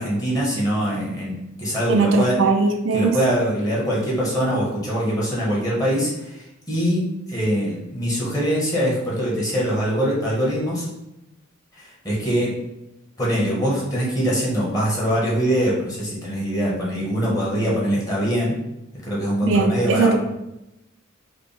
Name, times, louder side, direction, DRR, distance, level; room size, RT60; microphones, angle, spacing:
voice 1, 0.0-2.4 2.9-10.8 11.8-12.5 13.2-18.6 19.0-20.1, equal, 20° left, -6 dB, 1.4 m, -23 dB
voice 2, 1.9-3.2 19.4-20.1, right 4 dB, 65° right, 3 dB, 0.5 m, -19 dB
4.9 x 2.2 x 3.4 m, 0.91 s
head